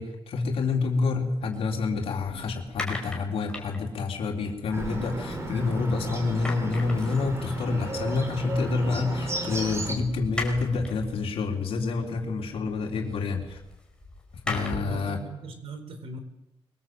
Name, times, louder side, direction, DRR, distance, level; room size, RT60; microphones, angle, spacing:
voice 1, 0.0-13.6 14.5-15.2, left 4 dB, 75° left, 2 dB, 3.9 m, -28 dB
sound 1, 1.2-5.9 6.2-15.1, left 2 dB, 10° left, 5.1 m, -40 dB
Bird, 4.7-9.9, right 1 dB, 30° right, 3.9 m, -34 dB
voice 2, 14.8-16.2, right 2 dB, 70° right, 8 dB, 4.2 m, -39 dB
25.0 x 23.0 x 8.0 m, 0.95 s
wide cardioid pair, 175°, 10 cm